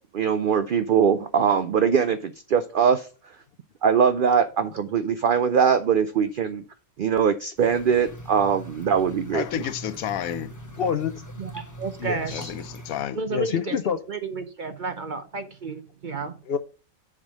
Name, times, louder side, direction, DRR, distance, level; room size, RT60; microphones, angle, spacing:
voice 1, 0.1-3.1 3.8-6.6 7.0-9.4, right 7 dB, 80° right, 0.4 m, -22 dB
sound 1, 7.6-13.0, right 1 dB, 15° left, 0.8 m, -41 dB
voice 2, 9.3-10.5 12.3-13.2, left 11 dB, 80° left, 1.1 m, -30 dB
voice 3, 10.8-11.1 12.0-12.5 13.3-14.0 16.5-16.6, left 7 dB, 60° left, 0.7 m, -26 dB
voice 4, 11.4-12.5 13.1-13.8 14.1-16.4, right 4 dB, 45° right, 0.8 m, -32 dB
7.4 x 3.7 x 6.2 m
omnidirectional pair, 1.5 m